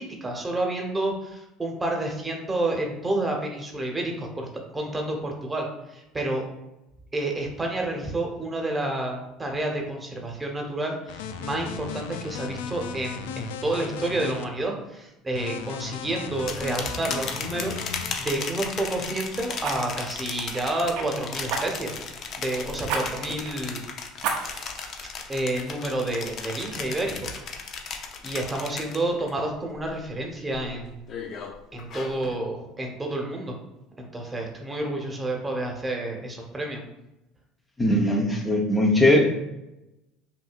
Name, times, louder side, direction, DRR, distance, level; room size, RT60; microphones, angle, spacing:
voice 1, 0.0-4.5 4.7-6.4 7.1-21.9 22.3-23.8 25.3-27.3 27.6-27.7 28.2-30.8 31.7-33.6 34.0-36.8, right 2 dB, 20° right, 1 dB, 1.1 m, -29 dB
sound 1, 11.1-14.5 15.3-18.2, left 6 dB, 85° left, 0.3 m, -36 dB
sound 2, 16.3-29.3 29.7-30.1 30.5-32.4, left 5 dB, 50° left, 0.7 m, -36 dB
Fire, 16.9-17.1 17.5-17.7 19.6-21.1 21.5-22.0 22.9-23.0 23.4-23.5 24.2-24.8 25.3-25.4, right 5 dB, 70° right, 0.7 m, -31 dB
voice 2, 37.8-39.2, left 1 dB, 15° left, -1 dB, 0.8 m, -20 dB
5.5 x 2.7 x 2.5 m, 0.93 s
hypercardioid pair, 80°, 0 cm